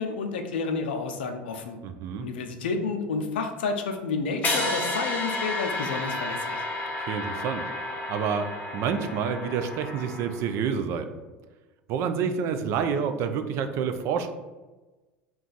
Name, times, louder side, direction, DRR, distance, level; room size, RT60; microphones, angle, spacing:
voice 1, 0.0-1.8 2.2-6.6, left 4 dB, 80° left, 5 dB, 0.4 m, -30 dB
voice 2, 1.8-2.3 7.1-7.6 8.1-11.2 11.9-14.3, right 6 dB, 55° right, 8 dB, 0.3 m, -28 dB
sound 1, 4.4-10.6, left 2 dB, 30° left, 0.7 m, -31 dB
2.3 x 2.3 x 3.8 m, 1.2 s
hypercardioid pair, 85°, 6 cm